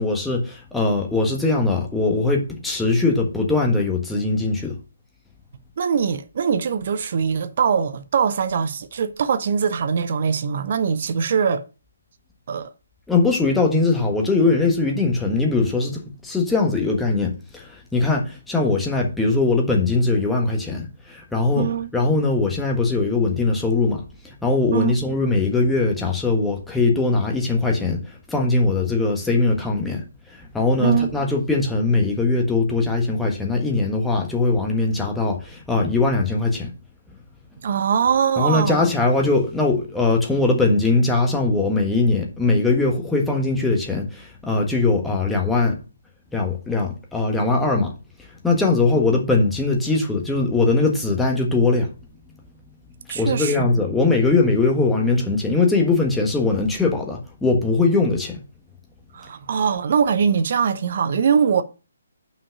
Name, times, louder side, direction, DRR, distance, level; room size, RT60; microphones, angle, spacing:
voice 1, 0.0-4.8 13.1-36.7 38.4-45.8 46.3-47.9 48.2-51.9 53.1-58.4, left 3 dB, 5° left, 1.5 m, -21 dB
voice 2, 5.8-11.6 12.5-12.7 21.5-21.9 24.7-25.0 30.8-31.1 37.6-38.9 53.1-53.7 59.1-61.6, right 6 dB, 45° right, 0.8 m, -22 dB
5.6 x 4.9 x 6.6 m
figure-of-eight pair, 140°, 0 cm